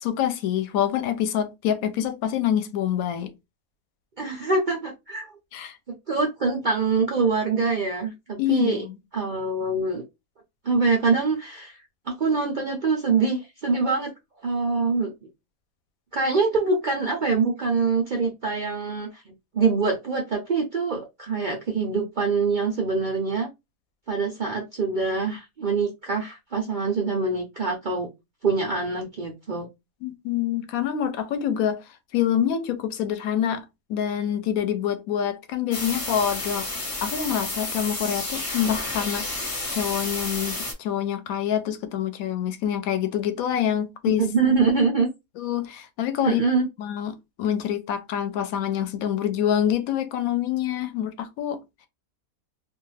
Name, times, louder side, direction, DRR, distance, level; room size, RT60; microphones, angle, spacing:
voice 1, 0.0-3.3 5.5-5.8 8.4-9.0 30.0-31.8 32.1-33.6 33.9-36.7 37.0-44.3 45.4-46.4 46.8-51.6, left 10 dB, 70° left, 0.9 m, -26 dB
voice 2, 4.2-5.3 6.1-8.8 9.1-10.0 10.6-11.8 12.1-14.1 14.4-15.1 16.1-23.5 24.1-28.1 28.4-29.7 44.1-45.1 46.2-46.7, right 4 dB, 80° right, 0.4 m, -24 dB
sound 1, 35.7-40.7, left 2 dB, 35° left, 0.5 m, -31 dB
2.5 x 2.4 x 3.1 m
omnidirectional pair, 1.7 m